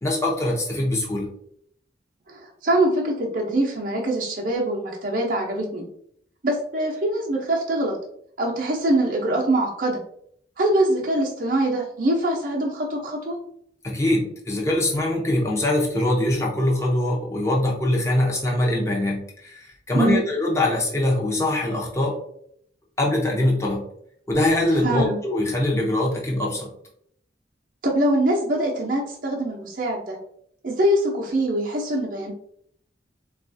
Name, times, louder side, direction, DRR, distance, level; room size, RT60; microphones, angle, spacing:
voice 1, 0.0-1.3 13.8-22.2 23.0-23.8 24.3-26.7, left 1 dB, 15° left, -2 dB, 0.7 m, -23 dB
voice 2, 2.3-5.8 6.4-8.0 8.4-10.0 10.6-13.4 19.9-20.2 24.8-25.2 27.8-30.2 30.6-32.3, right 1 dB, 45° right, -2 dB, 0.6 m, -23 dB
3.9 x 2.3 x 2.6 m, 0.68 s
head